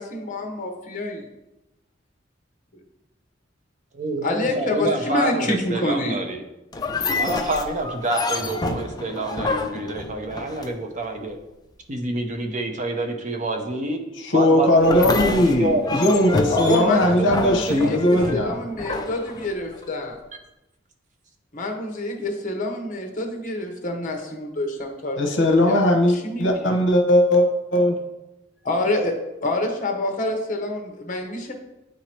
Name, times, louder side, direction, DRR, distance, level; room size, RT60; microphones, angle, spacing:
voice 1, 0.0-1.2 4.2-6.2 16.5-20.2 21.5-25.4 25.7-26.8 28.6-29.1 29.4-31.5, left 1 dB, 45° left, 3 dB, 1.0 m, -27 dB
voice 2, 3.9-6.4 7.2-11.4 11.9-14.0 14.3-16.2 16.7-18.3, right 2 dB, 40° right, 4 dB, 0.7 m, -27 dB
sound 1, 6.7-11.0 14.8-19.9, left 3 dB, 20° left, 0.4 m, -28 dB
voice 3, 14.2-18.5 25.2-28.0, left 1 dB, 70° left, 4 dB, 0.9 m, -19 dB
8.6 x 2.9 x 4.4 m, 0.95 s
head